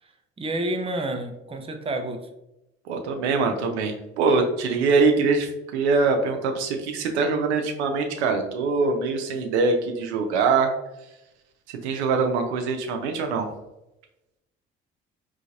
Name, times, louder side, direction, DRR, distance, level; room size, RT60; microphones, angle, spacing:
voice 1, 0.4-2.2, right 1 dB, 15° right, 5 dB, 0.6 m, -29 dB
voice 2, 2.9-10.7 11.8-13.5, right 4 dB, 80° right, 4 dB, 0.6 m, -23 dB
3.9 x 3.2 x 2.4 m, 0.92 s
hypercardioid pair, 55°, 33 cm